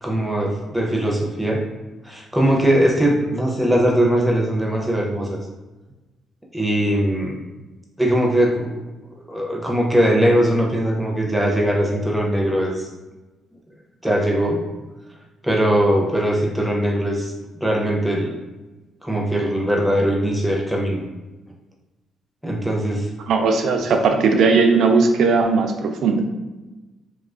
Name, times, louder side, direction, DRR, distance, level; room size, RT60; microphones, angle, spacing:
voice 1, 0.0-1.6 2.0-5.4 6.5-7.4 8.0-8.7 9.3-12.9 14.0-14.6 15.4-17.3 17.6-18.3 19.0-21.0 22.4-23.1, right 1 dB, ahead, -2 dB, 0.5 m, -20 dB
voice 2, 23.3-26.2, right 4 dB, 70° right, 4 dB, 0.3 m, -17 dB
2.3 x 2.3 x 2.4 m, 1.1 s
cardioid pair, 90°, 0 cm